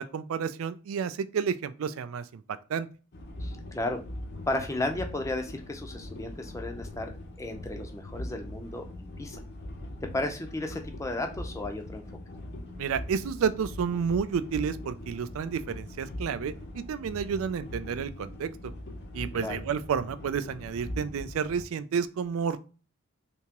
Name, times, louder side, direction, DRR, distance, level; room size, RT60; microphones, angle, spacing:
voice 1, 0.0-2.4 2.7-2.9 12.8-18.5 19.1-22.6, right 6 dB, 75° right, 13 dB, 0.3 m, -30 dB
sound 1, 3.1-21.6, left 1 dB, 50° left, 0.7 m, -41 dB
voice 2, 3.4-4.0 4.5-9.4 10.1-12.0 19.3-19.6, left 2 dB, 15° left, 5 dB, 0.5 m, -34 dB
3.4 x 2.8 x 2.9 m, 0.35 s
head